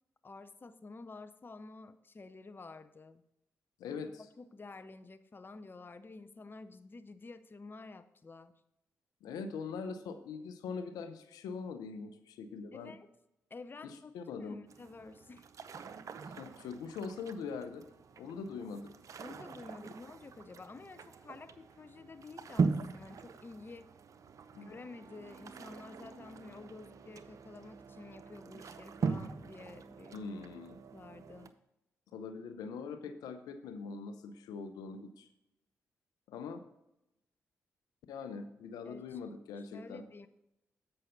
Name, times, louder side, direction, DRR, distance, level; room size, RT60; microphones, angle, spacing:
voice 1, 0.2-3.2 3.9-8.5 12.7-13.1 13.5-14.1 14.4-15.5 19.2-23.9 24.6-30.2 30.9-31.5 38.8-39.2 39.5-40.3, left 3 dB, 35° left, 12 dB, 0.6 m, -50 dB
voice 2, 3.8-4.3 9.2-12.9 13.8-14.6 16.2-17.8 18.2-18.9 24.5-24.8 30.1-30.8 32.1-35.3 36.3-36.6 38.1-40.0, left 5 dB, 80° left, 9 dB, 0.7 m, -42 dB
sound 1, 14.7-31.5, right 4 dB, 60° right, 0.6 m, -41 dB
7.9 x 5.6 x 5.1 m, 0.87 s
hypercardioid pair, 45°, 6 cm